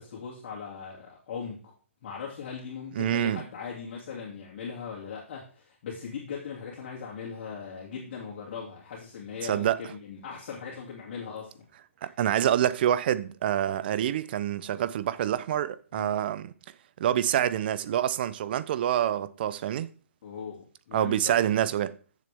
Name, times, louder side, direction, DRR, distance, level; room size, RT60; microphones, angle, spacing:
voice 1, 0.0-1.7 2.0-11.6 15.9-16.2 20.2-21.4, left 6 dB, 50° left, 2.9 m, -39 dB
voice 2, 3.0-3.4 9.4-9.8 12.0-16.5 17.0-19.9 20.9-21.9, right 11 dB, 45° right, 0.7 m, -26 dB
13.5 x 7.4 x 3.6 m
hypercardioid pair, 135°, 7 cm